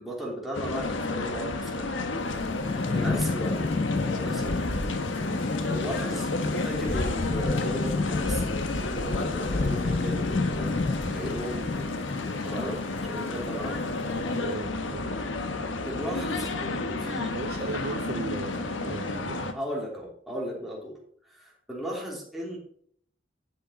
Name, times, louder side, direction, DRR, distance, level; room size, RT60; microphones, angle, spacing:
voice 1, 0.0-1.9 2.9-3.6 4.1-4.6 5.7-13.8 15.8-17.4 19.5-21.0 21.3-22.6, equal, ahead, 3.1 m, -36 dB
sound 1, 0.5-19.5, left 2 dB, 85° left, 1.2 m, -31 dB
Thunderstorm / Rain, 2.2-14.5, left 3 dB, 30° left, 0.3 m, -32 dB
voice 2, 14.1-15.2 17.3-19.5, right 3 dB, 55° right, 0.5 m, -37 dB
10.5 x 7.8 x 4.2 m
head